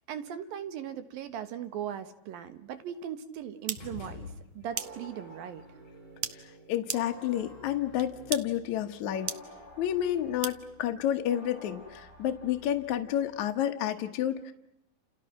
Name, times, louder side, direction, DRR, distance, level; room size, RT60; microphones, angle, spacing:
voice 1, 0.1-5.7, right 9 dB, 70° right, 10 dB, 3.1 m, -39 dB
sound 1, 3.7-3.8 4.8-4.9 6.2-6.3 6.9-7.0 8.0-8.1 8.3-8.4 9.3-9.4 10.4-10.5, right 9 dB, 90° right, 1.2 m, -31 dB
sound 2, 3.8-5.0, left 4 dB, 45° left, 5.5 m, -44 dB
sound 3, 4.7-13.5, right 1 dB, 15° right, 7.1 m, -50 dB
voice 2, 6.3-9.3 9.8-14.5, left 11 dB, 60° left, 5 dB, 2.2 m, -30 dB
29.5 x 29.5 x 6.0 m, 0.82 s
omnidirectional pair, 4.3 m